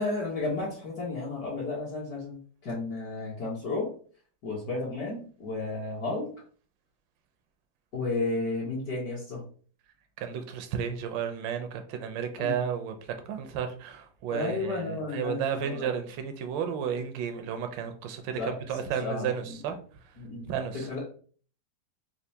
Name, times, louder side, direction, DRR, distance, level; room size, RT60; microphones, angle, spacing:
voice 1, 0.0-2.4 2.6-3.9 4.4-6.3 7.9-9.4 12.4-12.5 14.3-15.8 18.4-18.5 19.0-19.3 20.2-20.5 20.9-21.0, left 3 dB, 60° left, 1.4 m, -32 dB
voice 2, 10.2-19.8 20.5-20.9, right 7 dB, 80° right, 1.3 m, -33 dB
4.4 x 2.4 x 2.7 m
omnidirectional pair, 2.0 m